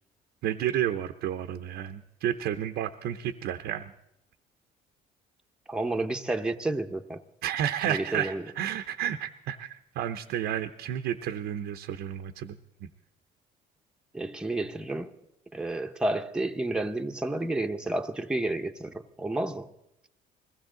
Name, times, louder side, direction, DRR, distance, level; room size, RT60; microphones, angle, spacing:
voice 1, 0.4-3.9 7.4-12.9, right 10 dB, 80° right, 0.7 m, -31 dB
voice 2, 5.7-7.2 7.9-8.4 14.1-15.1 15.5-19.7, right 2 dB, 5° right, 0.7 m, -30 dB
21.0 x 16.0 x 3.8 m
cardioid pair, 110°, 17 cm